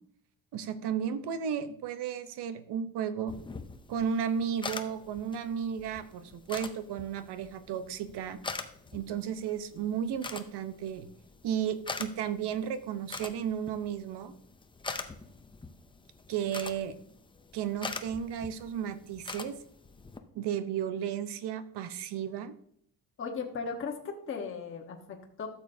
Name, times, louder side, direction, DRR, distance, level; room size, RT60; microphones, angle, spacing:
voice 1, 0.5-3.4 3.9-8.4 8.9-11.1 11.4-14.4 16.3-16.9 17.5-19.6 20.3-22.5, right 8 dB, 75° right, 11 dB, 0.9 m, -34 dB
sound 1, 3.3-20.2, left 4 dB, 15° left, 0.5 m, -44 dB
voice 2, 23.2-25.5, left 5 dB, 30° left, 0 dB, 1.1 m, -37 dB
12.5 x 7.1 x 2.7 m, 0.65 s
cardioid pair, 165°, 41 cm